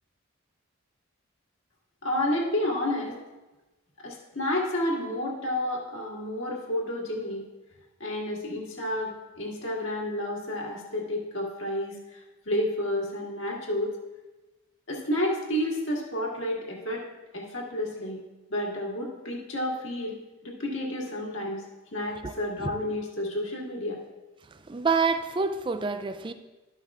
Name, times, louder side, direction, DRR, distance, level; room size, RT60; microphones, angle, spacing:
voice 1, 2.0-3.1 4.0-7.4 8.0-12.2 12.5-13.9 14.9-17.0 17.3-18.2 18.5-21.6 21.9-24.0, left 1 dB, 60° left, 1.8 m, -30 dB
voice 2, 24.5-26.3, right 4 dB, 20° right, 0.4 m, -27 dB
12.0 x 5.7 x 3.6 m
head